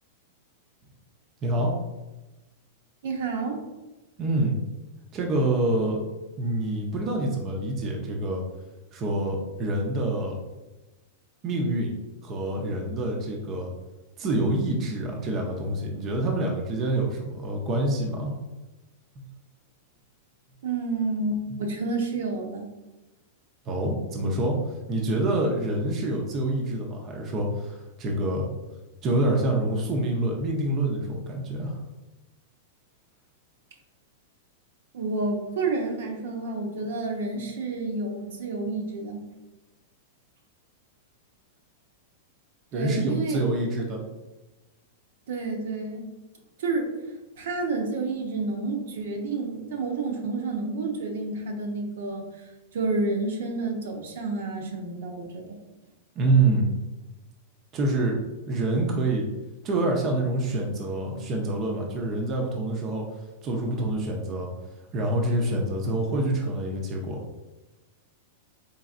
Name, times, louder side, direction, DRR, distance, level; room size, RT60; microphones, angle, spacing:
voice 1, 1.4-1.7 4.2-4.6 5.1-6.0 6.4-8.4 8.9-10.3 11.4-11.9 12.2-13.7 14.2-18.3 19.2-19.3 21.5-21.6 23.7-24.6 24.9-28.5 29.0-31.8 42.7-44.0 56.2-56.7 57.7-58.2 58.5-59.3 59.6-63.0 63.4-64.5 64.9-67.2, right 2 dB, 25° right, 0 dB, 0.5 m, -26 dB
voice 2, 3.0-3.6 20.6-22.6 34.9-39.3 42.7-43.4 45.3-46.0 46.6-46.9 47.4-52.3 52.7-55.6, right 3 dB, 75° right, 2 dB, 0.7 m, -29 dB
4.0 x 3.3 x 2.5 m, 1.1 s
supercardioid pair, 160°, 0 cm